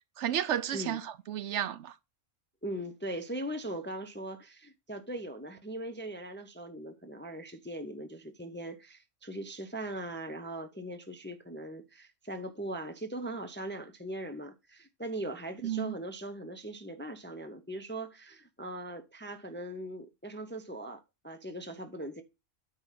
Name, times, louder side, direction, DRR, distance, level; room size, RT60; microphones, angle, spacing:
voice 1, 0.2-1.9 15.6-15.9, right 10 dB, 70° right, 0.9 m, -32 dB
voice 2, 2.6-22.2, right 1 dB, 15° left, 0.5 m, -40 dB
8.9 x 3.7 x 5.6 m
omnidirectional pair, 1.3 m